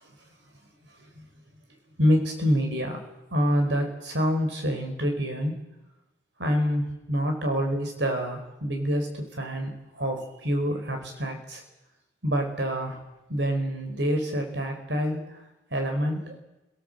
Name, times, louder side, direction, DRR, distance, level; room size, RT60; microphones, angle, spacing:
voice 1, 2.0-3.0 3.3-5.6 6.4-11.6 12.2-13.0 13.3-15.4 15.7-16.3, equal, 75° right, 4 dB, 5.0 m, -27 dB
24.5 x 18.0 x 8.0 m, 0.97 s
head